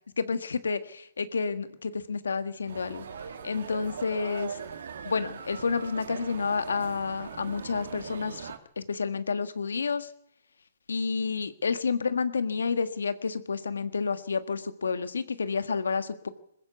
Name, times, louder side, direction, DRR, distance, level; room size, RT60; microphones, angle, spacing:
voice 1, 0.2-3.0 3.4-4.6 5.0-10.1 10.9-16.3, left 5 dB, 80° left, 11 dB, 1.7 m, -30 dB
sound 1, 2.7-8.6, right 7 dB, 70° right, 2.3 m, -40 dB
21.0 x 15.0 x 8.2 m, 0.77 s
hypercardioid pair, 135°, 0 cm